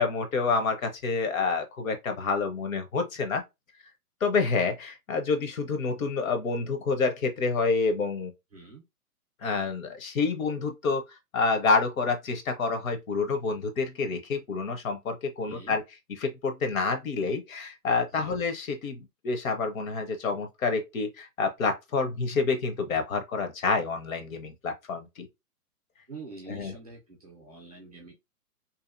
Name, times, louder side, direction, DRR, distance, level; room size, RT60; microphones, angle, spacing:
voice 1, 0.0-3.4 4.2-8.3 9.4-11.0 11.3-15.8 16.2-25.3 26.5-26.7, left 4 dB, 60° left, 0.8 m, -28 dB
voice 2, 8.5-8.8 15.4-15.8 18.1-18.4 26.1-28.1, right 3 dB, 25° right, 0.4 m, -45 dB
2.7 x 2.3 x 2.5 m
hypercardioid pair, 155°, 46 cm